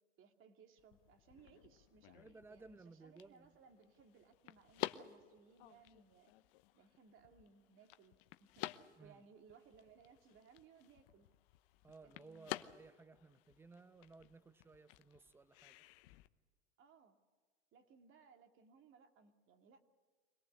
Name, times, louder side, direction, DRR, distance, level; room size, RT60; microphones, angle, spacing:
voice 1, 0.2-6.3 6.7-11.3 12.0-12.5 16.8-17.2 17.7-19.8, right 6 dB, 35° right, 5 dB, 2.5 m, -65 dB
sound 1, 0.8-16.3, left 17 dB, 55° left, 1.0 m, -52 dB
voice 2, 2.1-3.5 9.0-9.2 11.8-15.7, right 3 dB, 5° right, 14 dB, 0.8 m, -59 dB
24.5 x 18.0 x 8.2 m, 1.5 s
hypercardioid pair, 110°, 34 cm